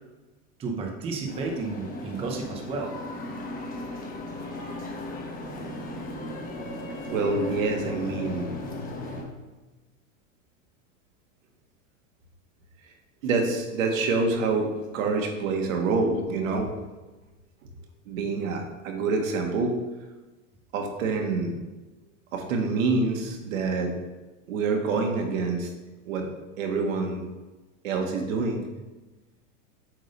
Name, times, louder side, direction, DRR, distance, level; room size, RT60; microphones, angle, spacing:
voice 1, 0.6-2.9, right 4 dB, 15° right, 1 dB, 0.6 m, -32 dB
sound 1, 1.3-9.2, left 2 dB, 20° left, 1.0 m, -36 dB
voice 2, 4.0-4.4 7.1-8.5 13.2-16.7 18.1-19.7 20.7-21.5 22.3-23.9 24.5-25.7 26.1-26.3 26.6-27.2 27.8-28.6, right 3 dB, 75° right, 3 dB, 1.6 m, -26 dB
7.8 x 3.7 x 5.2 m, 1.2 s
supercardioid pair, 145°, 40 cm